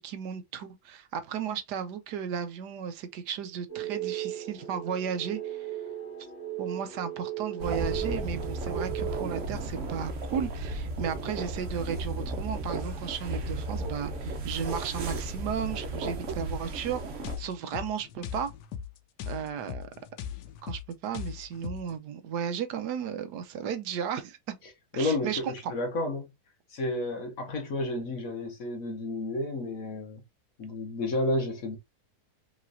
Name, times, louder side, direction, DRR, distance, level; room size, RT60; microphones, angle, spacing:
voice 1, 0.0-5.7 6.6-18.5 19.3-19.9 20.6-24.6 24.9-25.7, right 8 dB, 85° right, 1.3 m, -34 dB
sound 1, 3.7-9.4, right 12 dB, 40° left, 1.9 m, -36 dB
sound 2, 7.6-17.4, right 2 dB, 55° right, 1.1 m, -34 dB
sound 3, 17.2-22.0, left 8 dB, 90° left, 1.2 m, -39 dB
voice 2, 24.9-26.3 26.7-30.2 30.6-31.8, left 2 dB, 60° left, 1.6 m, -31 dB
4.9 x 3.2 x 2.5 m
omnidirectional pair, 1.8 m